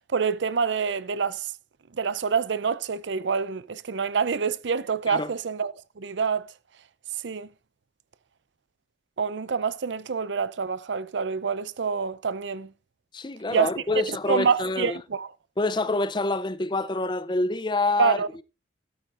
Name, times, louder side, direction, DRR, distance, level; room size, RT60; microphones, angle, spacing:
voice 1, 0.1-1.5 1.9-6.5 7.2-7.5 9.2-12.7 13.5-13.7 14.1-15.3 18.0-18.3, right 5 dB, 75° right, 0.6 m, -26 dB
voice 2, 13.1-15.0 15.6-18.4, left 2 dB, 25° left, 0.5 m, -27 dB
13.0 x 12.5 x 2.5 m
head